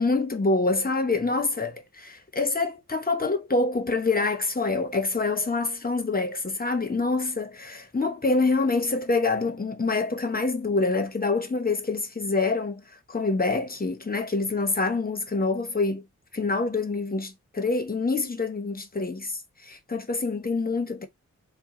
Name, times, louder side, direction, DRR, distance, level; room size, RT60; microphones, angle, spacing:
voice 1, 0.0-12.8 13.1-16.0 16.3-21.1, left 3 dB, 30° left, 1.0 m, -26 dB
4.2 x 2.4 x 3.7 m
wide cardioid pair, 80°, 30 cm